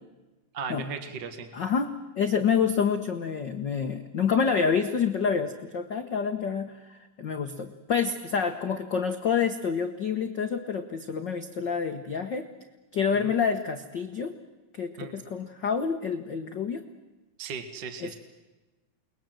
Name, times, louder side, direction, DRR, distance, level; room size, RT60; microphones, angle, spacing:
voice 1, 0.5-1.5 13.2-13.3 15.0-15.2 17.4-18.2, right 6 dB, 45° right, 7 dB, 1.7 m, -37 dB
voice 2, 1.5-1.9 2.1-12.5 12.9-14.3 14.7-16.8 18.0-18.1, left 6 dB, 80° left, 6 dB, 0.9 m, -28 dB
29.5 x 21.5 x 7.7 m, 1.1 s
omnidirectional pair, 3.9 m